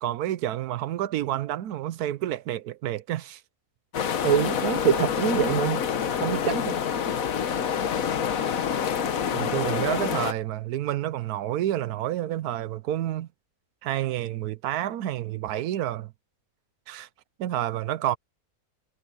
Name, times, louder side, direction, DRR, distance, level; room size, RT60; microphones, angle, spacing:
voice 1, 0.0-3.4 9.3-13.3 13.8-16.1 16.9-17.1 17.4-18.2, right 12 dB, 85° right, 1.2 m, -29 dB
sound 1, 3.9-10.3, left 7 dB, 65° left, 1.5 m, -27 dB
voice 2, 4.2-5.8 6.2-6.8, right 7 dB, 65° right, 1.5 m, -24 dB
omnidirectional pair, 1.6 m